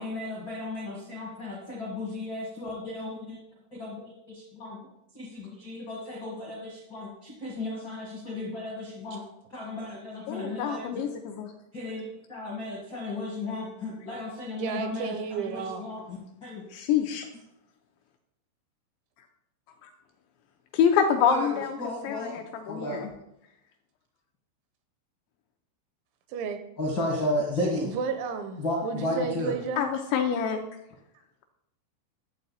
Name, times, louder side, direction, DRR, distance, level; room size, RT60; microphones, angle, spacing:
voice 1, 0.0-3.4 3.7-4.8 5.1-9.2 9.5-11.0 11.7-16.6 21.2-22.3 22.6-23.0 26.8-27.9 28.6-29.5, left 1 dB, 60° left, -4 dB, 1.1 m, -34 dB
voice 2, 10.3-11.5 16.7-17.3 19.8-19.9 20.7-21.8 22.0-23.1 29.8-30.7, left 7 dB, 80° left, 4 dB, 2.6 m, -26 dB
voice 3, 14.6-15.9 26.3-26.6 27.8-29.9, right 5 dB, 80° right, 8 dB, 2.9 m, -32 dB
12.5 x 7.7 x 4.2 m, 0.84 s
omnidirectional pair, 5.7 m